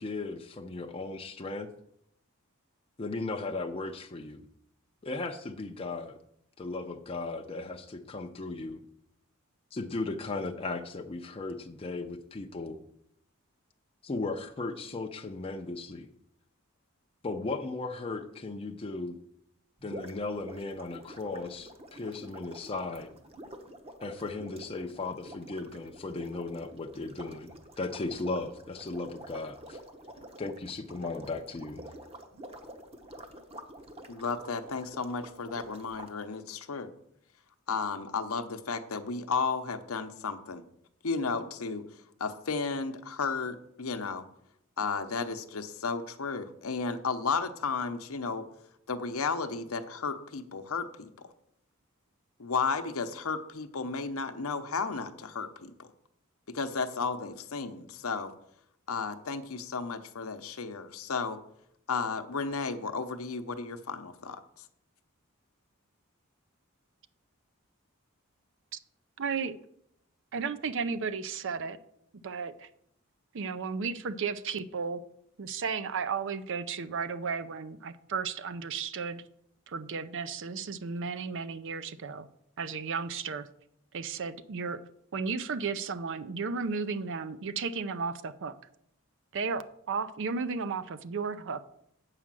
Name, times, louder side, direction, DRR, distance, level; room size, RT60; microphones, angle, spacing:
voice 1, 0.0-1.7 3.0-4.4 5.0-6.2 6.6-8.8 9.7-12.8 14.0-16.1 17.2-19.2 19.8-23.1 24.0-29.8 30.4-31.9, left 3 dB, 25° left, 3 dB, 0.5 m, -36 dB
sound 1, 19.8-36.1, right 1 dB, 25° right, 0.9 m, -48 dB
voice 2, 34.1-36.9 37.7-40.6 41.0-41.8 42.2-44.2 44.8-48.4 48.9-51.3 52.4-55.9 56.5-58.3 58.9-61.4 61.9-64.6, left 4 dB, 75° left, 8 dB, 0.8 m, -33 dB
voice 3, 69.2-69.6 70.3-71.8 72.2-72.7 73.3-75.0 75.4-79.2 79.7-82.3 82.6-83.5 83.9-84.8 85.1-88.6 89.3-91.6, right 5 dB, 60° right, 13 dB, 0.5 m, -34 dB
8.3 x 4.9 x 7.5 m, 0.74 s
head